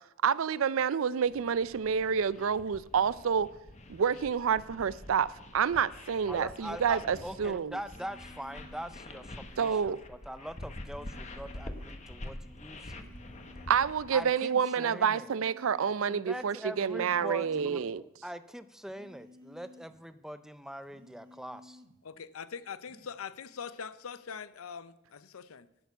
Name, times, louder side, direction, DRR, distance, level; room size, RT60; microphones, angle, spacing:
voice 1, 0.2-3.5 3.9-5.3 5.5-7.8 9.6-10.0 13.7-18.0, right 7 dB, 65° right, 0.4 m, -28 dB
sound 1, 1.3-14.2, left 1 dB, 35° left, 1.0 m, -46 dB
voice 2, 6.3-13.1 14.1-15.3 16.1-21.8, equal, ahead, 0.4 m, -42 dB
sound 2, 7.8-9.0 10.9-12.0 12.9-14.0 14.8-16.0 16.8-18.0 18.8-20.0 20.8-22.0 22.8-23.2, left 1 dB, 40° right, 1.4 m, -55 dB
voice 3, 22.0-25.7, left 6 dB, 75° left, 0.6 m, -42 dB
11.5 x 6.8 x 8.0 m
head